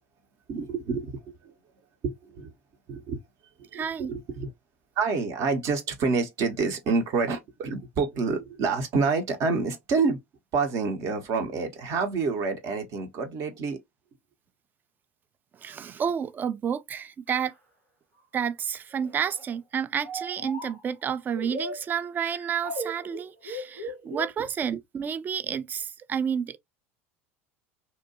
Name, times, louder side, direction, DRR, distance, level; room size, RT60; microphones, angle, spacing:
voice 1, 0.5-1.5 2.0-2.5 2.9-3.2 3.6-4.5 5.0-10.2 10.5-13.8, right 4 dB, 45° right, 0.7 m, -28 dB
voice 2, 3.7-4.1 15.6-17.5 18.3-26.6, right 7 dB, 25° right, 0.3 m, -30 dB
sound 1, 17.3-17.5 18.2-18.3 18.9-19.6 20.0-20.9 21.3-24.3, equal, 85° right, 1.3 m, -37 dB
2.7 x 2.1 x 2.6 m
figure-of-eight pair, 75°, 7 cm